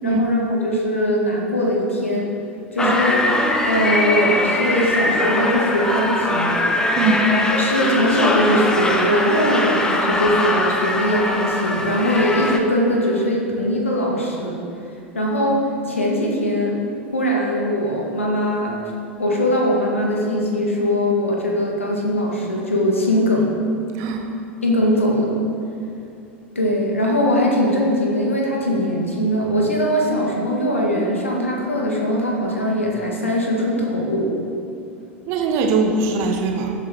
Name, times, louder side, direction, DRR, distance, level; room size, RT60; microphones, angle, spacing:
voice 1, 0.0-2.3 2.7-3.2 3.7-6.6 7.5-14.6 15.1-16.7 17.1-18.8 19.2-23.5 24.6-25.3 26.6-34.3, equal, 80° left, -2 dB, 1.9 m, -21 dB
sound 1, 2.8-12.6, left 2 dB, 10° left, 1.0 m, -21 dB
voice 2, 7.0-7.3 24.0-24.2 35.3-36.7, right 4 dB, 45° right, 3 dB, 1.4 m, -21 dB
15.0 x 8.4 x 3.7 m, 2.6 s
figure-of-eight pair, 85°, 7 cm